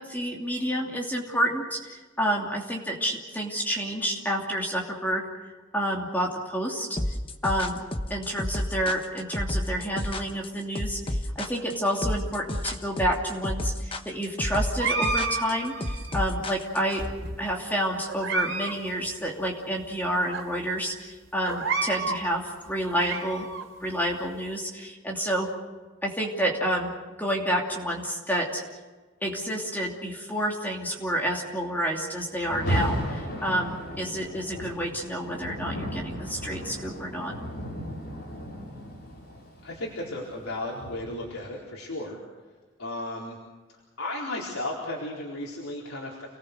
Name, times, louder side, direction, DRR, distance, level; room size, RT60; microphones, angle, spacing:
voice 1, 0.0-5.3 5.7-7.2 7.4-7.8 8.1-17.0 17.4-23.5 23.8-25.5 26.0-26.9 27.2-28.6 29.2-37.3, equal, 10° left, -1 dB, 2.7 m, -29 dB
sound 1, 7.0-17.0, left 1 dB, 25° left, 1.2 m, -30 dB
sound 2, 14.8-16.2 16.9-17.6 18.0-18.8 19.0-19.1 19.8-19.9 20.3-20.4 21.4-22.2 22.7-23.6, right 3 dB, 55° right, 3.7 m, -30 dB
Rain, 32.4-41.4, equal, 45° left, 6.4 m, -35 dB
voice 2, 39.6-42.2 42.8-43.4 44.0-46.3, left 1 dB, 85° left, -4 dB, 4.2 m, -34 dB
29.5 x 19.5 x 6.7 m, 1.3 s
head